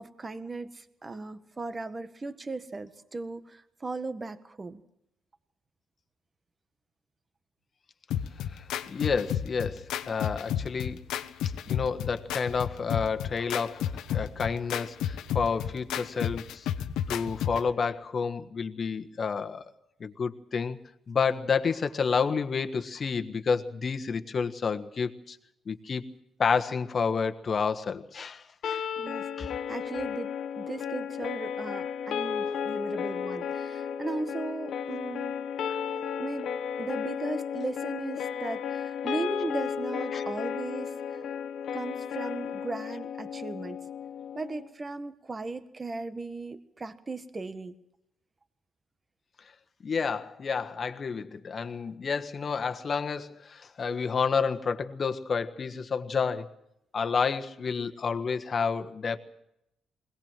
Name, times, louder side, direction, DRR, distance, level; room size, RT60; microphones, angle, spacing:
voice 1, 0.0-4.8 29.0-35.4 36.2-36.5 36.8-41.2 41.7-43.8 44.3-47.7, right 3 dB, 25° right, 10 dB, 1.5 m, -37 dB
sound 1, 8.1-17.7, left 10 dB, 85° left, 1.0 m, -32 dB
voice 2, 8.5-11.0 11.7-16.7 17.1-19.6 20.0-20.8 21.1-25.4 25.7-26.0 26.4-28.9 29.4-29.5 35.7-35.8 40.1-40.2 49.8-56.5 56.9-59.2, left 5 dB, 45° left, 8 dB, 1.4 m, -30 dB
sound 2, 28.6-44.7, left 7 dB, 65° left, 1.2 m, -34 dB
21.5 x 18.5 x 7.5 m, 0.81 s
cardioid pair, 90°, 0 cm